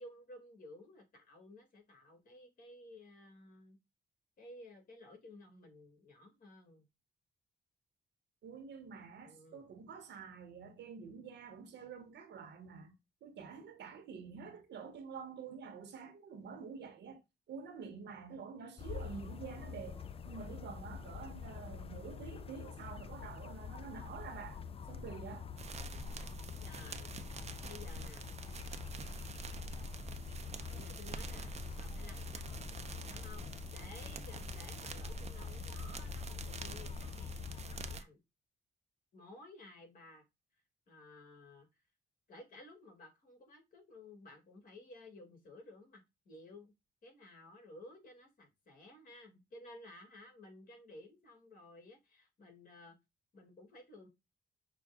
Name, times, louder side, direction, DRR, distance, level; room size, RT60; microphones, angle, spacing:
voice 1, 0.0-3.8 4.4-6.9 9.2-9.7 26.6-27.1 27.6-28.3 30.7-32.4 33.0-38.2 39.1-40.2 40.9-41.7 42.3-46.7 47.0-53.0 53.3-54.1, left 2 dB, 55° left, 2.1 m, -55 dB
voice 2, 8.4-12.9 13.2-17.2 17.5-24.6 24.9-25.5, right 6 dB, 85° right, 1.2 m, -48 dB
sound 1, 18.8-38.0, left 7 dB, 35° left, 0.4 m, -46 dB
sound 2, 25.6-38.0, right 4 dB, 40° right, 0.6 m, -46 dB
6.0 x 2.4 x 3.5 m
cardioid pair, 120°, 18 cm